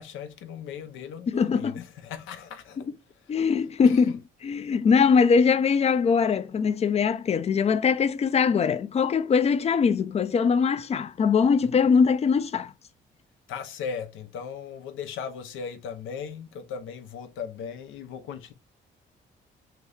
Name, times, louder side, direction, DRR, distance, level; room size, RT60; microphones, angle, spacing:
voice 1, 0.0-2.9 3.1-3.4 3.8-4.2 13.5-18.5, left 7 dB, 80° left, 0.6 m, -37 dB
voice 2, 1.3-1.7 3.3-4.1 4.4-12.7, left 6 dB, 30° left, 0.4 m, -22 dB
2.9 x 2.7 x 3.2 m
cardioid pair, 90°, 20 cm